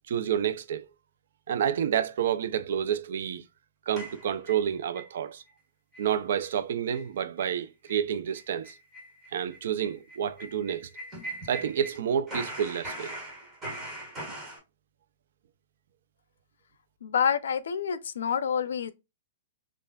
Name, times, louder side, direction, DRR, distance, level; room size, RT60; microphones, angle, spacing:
voice 1, 0.1-0.9 1.5-3.4 3.9-5.4 6.0-8.8 9.3-10.9 11.5-13.2, right 9 dB, 60° right, 0.5 m, -29 dB
sound 1, 4.0-5.1 5.5-5.6 5.9-6.2 6.4-6.5 6.9-7.1 7.4-7.6 7.9-8.0 8.3-12.0 12.3-14.6, right 1 dB, 10° right, 1.6 m, -41 dB
voice 2, 17.0-18.9, left 7 dB, 80° left, 0.5 m, -27 dB
5.5 x 2.5 x 2.3 m
hypercardioid pair, 170°, 0 cm